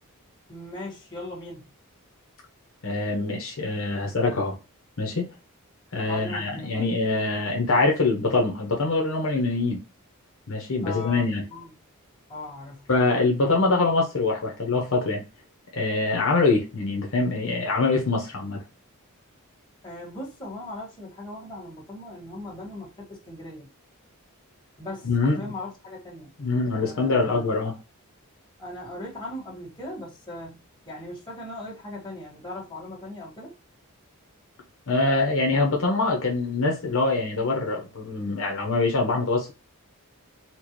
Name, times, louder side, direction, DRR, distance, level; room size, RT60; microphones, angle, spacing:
voice 1, 0.5-1.7 6.1-6.9 10.8-11.7 12.3-12.9 19.8-23.7 24.8-26.3 26.7-27.7 28.6-30.6 30.8-33.5, left 1 dB, 20° left, 1.7 m, -39 dB
voice 2, 2.8-4.6 5.0-5.3 5.9-9.8 10.5-11.4 12.9-15.2 15.7-18.6 25.0-25.5 26.4-27.7 34.9-39.5, left 3 dB, 60° left, 0.9 m, -24 dB
4.4 x 2.1 x 3.1 m
head